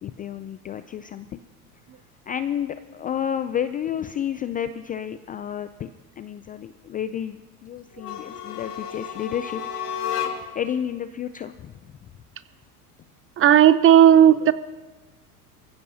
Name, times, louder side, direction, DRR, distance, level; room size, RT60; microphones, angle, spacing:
voice 1, 0.0-1.4 2.3-5.9 6.2-9.6 10.5-12.0, left 9 dB, 20° left, 11 dB, 0.3 m, -31 dB
sound 1, 7.9-10.7, left 8 dB, 85° left, 1.8 m, -32 dB
voice 2, 13.4-14.5, right 10 dB, 30° right, 15 dB, 0.7 m, -13 dB
24.0 x 15.5 x 2.8 m, 1.2 s
hypercardioid pair, 85°, 46 cm